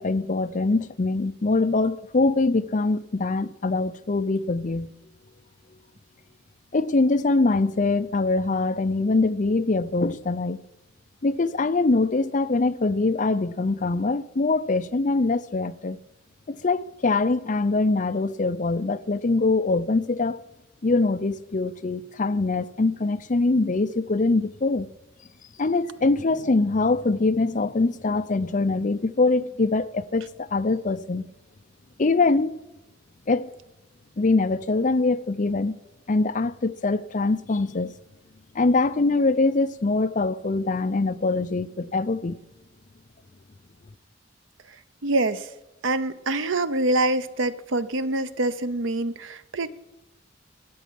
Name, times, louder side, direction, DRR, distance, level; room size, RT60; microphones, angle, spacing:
voice 1, 0.0-4.9 6.7-10.6 11.2-16.0 16.5-20.4 20.8-24.9 25.6-31.3 32.0-32.6 33.3-33.5 34.2-35.8 36.1-37.9 38.5-42.4, left 3 dB, 40° left, 0.5 m, -23 dB
voice 2, 45.0-45.5 45.8-49.7, right 2 dB, 85° right, 0.7 m, -25 dB
13.5 x 9.5 x 7.5 m
head